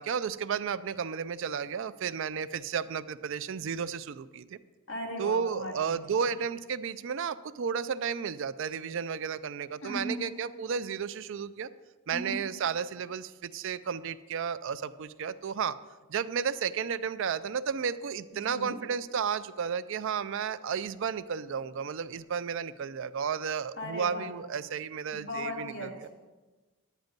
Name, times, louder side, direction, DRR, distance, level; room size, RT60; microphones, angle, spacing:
voice 1, 0.0-4.6 5.2-11.7 12.1-15.8 16.1-25.9, right 7 dB, 55° right, 14 dB, 0.4 m, -33 dB
voice 2, 4.9-6.0 9.8-10.2 12.1-12.4 18.5-18.7 23.8-24.3 25.1-26.2, left 1 dB, 55° left, -1 dB, 2.3 m, -37 dB
10.5 x 9.2 x 5.2 m, 1.2 s
head